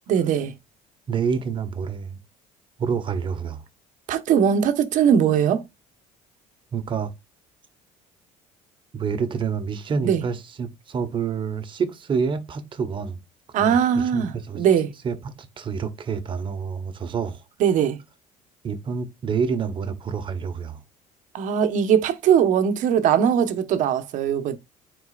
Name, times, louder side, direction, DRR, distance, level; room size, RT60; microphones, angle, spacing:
voice 1, 0.1-0.5 4.1-5.6 10.0-10.2 13.5-14.9 17.6-18.0 21.3-24.6, right 8 dB, 60° right, 1.2 m, -20 dB
voice 2, 1.1-2.2 2.8-3.6 6.7-7.1 8.9-13.2 13.6-14.6 15.0-17.4 18.6-20.8, right 6 dB, 35° right, 1.3 m, -28 dB
9.6 x 4.5 x 2.5 m
cardioid pair, 115°, 15 cm